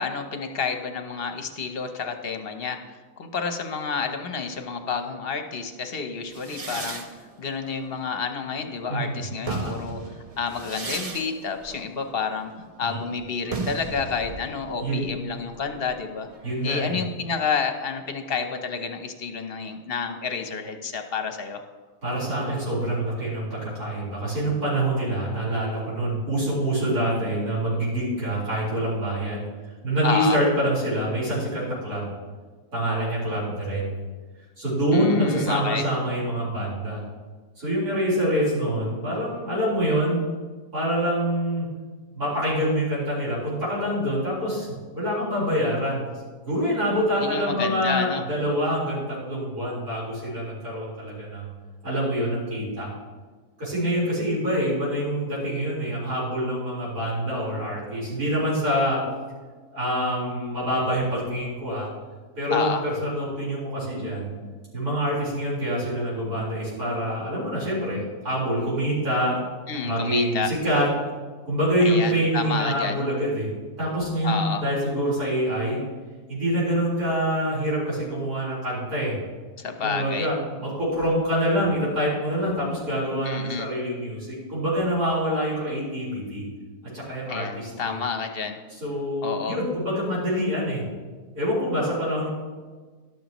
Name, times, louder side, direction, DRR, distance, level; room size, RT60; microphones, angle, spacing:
voice 1, 0.0-7.0 7.4-10.0 10.4-12.5 12.8-16.3 16.6-21.6 30.0-30.4 34.9-35.8 47.2-48.2 62.5-62.8 69.7-70.5 71.8-73.0 74.2-74.6 79.6-80.3 83.2-83.7 87.3-88.6 89.2-89.6, left 5 dB, 45° left, 6 dB, 1.0 m, -29 dB
sound 1, 6.3-8.8 9.2-16.8, right 3 dB, 35° right, 0.6 m, -37 dB
voice 2, 8.9-9.2 9.5-9.8 12.8-13.0 14.8-15.1 16.4-17.0 22.0-29.4 29.8-32.1 32.7-33.9 34.6-37.0 37.6-40.3 40.7-41.7 42.1-46.1 46.5-51.5 51.8-52.9 53.6-59.0 59.7-61.9 62.4-64.3 64.7-69.4 69.8-70.9 71.4-73.5 73.8-75.8 76.3-79.1 79.8-86.4 86.9-88.0 88.8-90.8 91.3-92.3, equal, 75° right, -9 dB, 4.7 m, -26 dB
12.0 x 12.0 x 3.0 m, 1.4 s
omnidirectional pair, 1.6 m